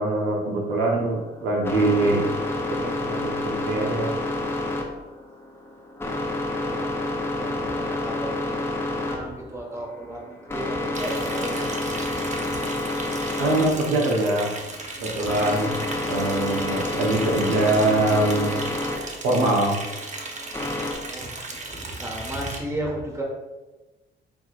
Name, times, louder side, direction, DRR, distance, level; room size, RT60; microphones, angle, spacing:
voice 1, 0.0-2.2 2.7-4.1 13.4-14.5 15.0-15.7 16.1-18.5 19.2-19.7, right 2 dB, 90° right, -1 dB, 0.9 m, -23 dB
sound 1, 1.1-20.9, left 2 dB, 10° left, 0.7 m, -29 dB
voice 2, 6.6-7.1 7.4-11.7 12.0-12.7 20.9-23.2, right 1 dB, 15° right, -2 dB, 1.2 m, -35 dB
Liquid, 10.9-22.6, right 3 dB, 35° right, 0.7 m, -36 dB
5.7 x 3.1 x 2.4 m, 1.2 s
cardioid pair, 90°, 20 cm